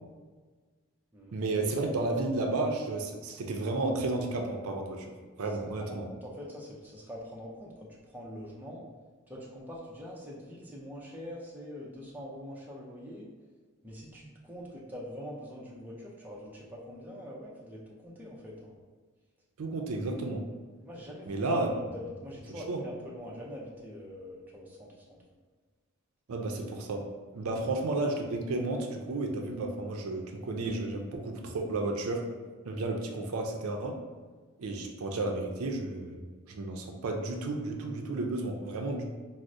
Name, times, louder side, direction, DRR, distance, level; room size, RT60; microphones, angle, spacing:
voice 1, 1.3-5.1 5.4-6.1 19.6-20.5 21.3-21.7 22.7-22.8 26.3-27.1 27.3-32.3 32.7-34.0 34.6-36.2 36.5-39.0, right 2 dB, 75° right, 2 dB, 0.4 m, -32 dB
voice 2, 5.5-8.8 9.3-13.3 13.8-18.7 20.8-21.3 21.9-25.2 27.4-27.6, equal, 10° right, -5 dB, 0.4 m, -44 dB
4.5 x 2.0 x 2.5 m, 1.4 s
head